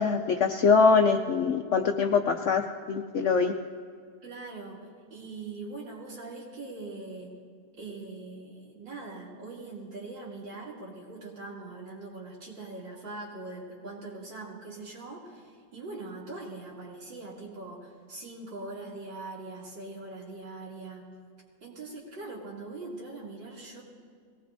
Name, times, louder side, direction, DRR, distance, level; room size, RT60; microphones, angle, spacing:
voice 1, 0.0-3.5, left 5 dB, 75° left, 5 dB, 0.7 m, -23 dB
voice 2, 4.2-7.4 7.8-21.1 21.6-23.8, right 3 dB, 85° right, -4 dB, 3.5 m, -42 dB
21.5 x 18.5 x 2.7 m, 2.1 s
omnidirectional pair, 2.0 m